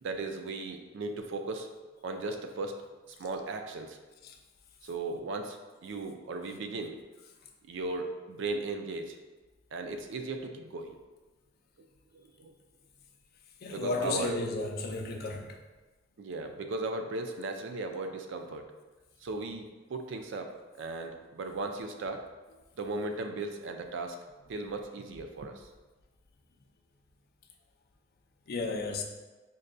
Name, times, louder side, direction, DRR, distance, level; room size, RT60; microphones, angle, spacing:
voice 1, 0.0-1.7 2.0-2.8 3.1-4.0 4.8-7.0 7.7-9.2 9.7-11.0 12.1-12.5 13.7-14.4 16.2-18.7 19.2-22.2 22.8-24.2 24.5-25.7, right 3 dB, 65° right, 0.4 m, -37 dB
voice 2, 13.6-15.6 28.5-29.0, left 3 dB, 50° left, 0.4 m, -33 dB
5.2 x 2.2 x 2.5 m
head